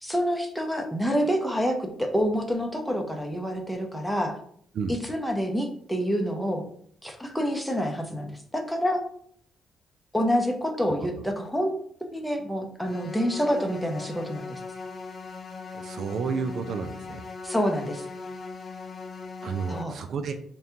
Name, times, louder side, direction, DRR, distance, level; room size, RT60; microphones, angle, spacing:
voice 1, 0.0-4.4 4.9-6.7 7.0-9.0 10.1-11.7 12.0-14.6 17.4-18.0 19.7-20.0, equal, 5° left, 3 dB, 0.7 m, -27 dB
sound 1, 12.8-19.8, left 4 dB, 40° left, 0.3 m, -39 dB
voice 2, 15.7-17.2 19.4-20.3, right 5 dB, 60° right, 6 dB, 0.4 m, -31 dB
4.2 x 2.3 x 3.8 m, 0.63 s
cardioid pair, 90°, 0 cm